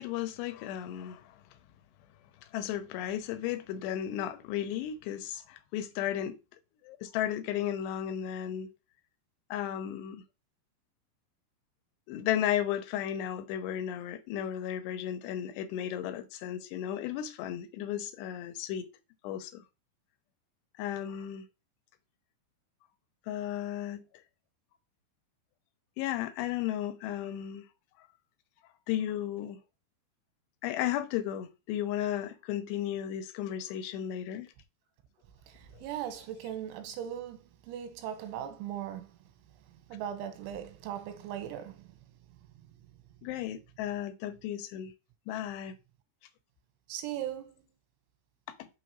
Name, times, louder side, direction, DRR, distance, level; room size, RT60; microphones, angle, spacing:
voice 1, 0.0-1.4 2.5-6.4 6.8-8.7 9.5-10.2 12.1-18.9 19.2-19.6 20.8-21.5 23.3-24.0 26.0-27.7 28.0-28.1 28.9-29.6 30.6-34.5 35.7-36.3 43.2-44.9 45.3-45.7 48.6-48.7, left 11 dB, 80° left, 2.6 m, -34 dB
voice 2, 35.5-39.1 39.7-42.0 46.9-47.7, right 10 dB, 90° right, 3.3 m, -39 dB
6.8 x 3.1 x 5.3 m
omnidirectional pair, 5.4 m